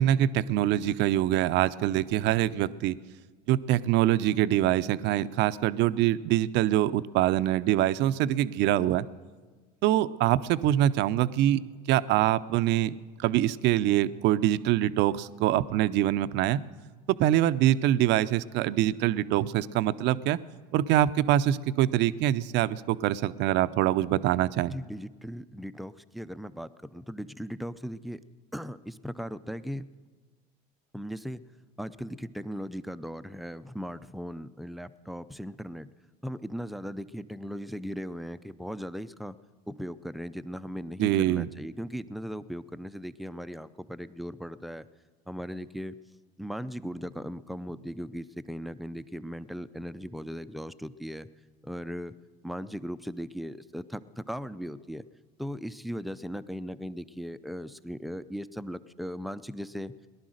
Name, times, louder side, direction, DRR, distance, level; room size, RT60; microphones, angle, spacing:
voice 1, 0.0-3.0 3.5-9.1 9.8-11.6 11.9-12.9 13.2-16.6 17.2-20.4 20.7-24.7 41.0-41.5, right 13 dB, 60° right, 15 dB, 0.6 m, -24 dB
voice 2, 24.7-28.2 28.5-29.9 30.9-31.4 31.8-35.9 36.2-39.4 39.7-44.9 45.3-46.0 46.4-51.3 51.6-52.1 52.4-55.0 55.4-59.9, equal, ahead, 12 dB, 0.5 m, -38 dB
18.0 x 11.5 x 6.4 m, 1.4 s
supercardioid pair, 90°, 21 cm